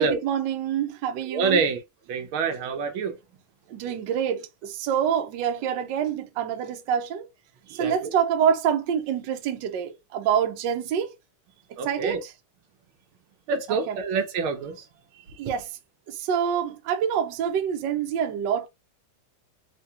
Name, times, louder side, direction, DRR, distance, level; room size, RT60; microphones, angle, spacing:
voice 1, 0.0-1.6 3.7-7.3 7.7-11.1 11.8-12.3 13.9-14.0 15.4-15.7 16.1-18.7, right 8 dB, 70° right, 1.3 m, -26 dB
voice 2, 1.3-1.8 2.1-3.2 7.7-8.1 11.8-12.2 13.5-14.9, right 4 dB, 85° right, 1.7 m, -26 dB
4.7 x 2.8 x 2.8 m
omnidirectional pair, 2.2 m